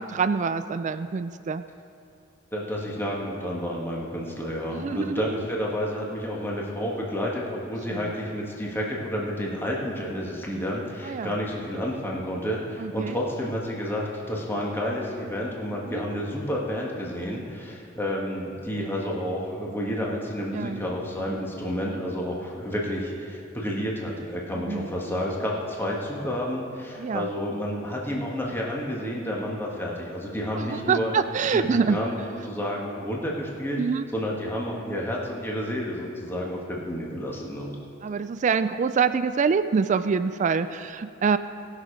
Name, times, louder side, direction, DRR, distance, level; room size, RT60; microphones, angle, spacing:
voice 1, 0.0-1.6 4.7-5.4 7.9-8.1 11.0-11.3 12.8-13.2 15.9-16.0 20.5-20.8 24.5-24.9 27.0-27.3 30.5-32.0 33.8-34.1 38.0-41.4, right 5 dB, 40° right, 11 dB, 0.3 m, -26 dB
voice 2, 2.5-31.1 31.5-32.2 32.4-33.8 34.1-37.7, equal, 10° left, -3 dB, 1.5 m, -30 dB
18.5 x 6.5 x 5.0 m, 2.7 s
head